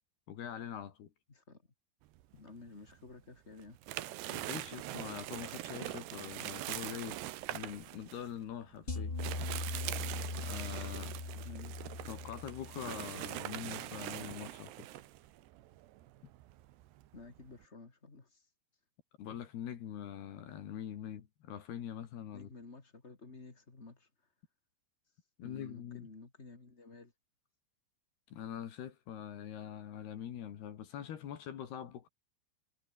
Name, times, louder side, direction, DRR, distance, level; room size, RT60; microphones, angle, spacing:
voice 1, 0.3-1.1 4.3-9.2 10.4-11.2 12.1-14.9 19.2-22.5 25.4-26.1 28.3-32.1, left 9 dB, 65° left, 3.9 m, -44 dB
voice 2, 1.3-1.6 2.3-3.8 11.4-11.8 17.1-18.5 22.3-24.3 25.1-27.1, left 3 dB, 20° left, 1.7 m, -53 dB
sound 1, 2.2-3.1 3.5-17.7, right 15 dB, 75° right, 3.1 m, -43 dB
sound 2, 8.9-13.2, left 3 dB, 40° left, 0.8 m, -40 dB
omnidirectional pair, 5.3 m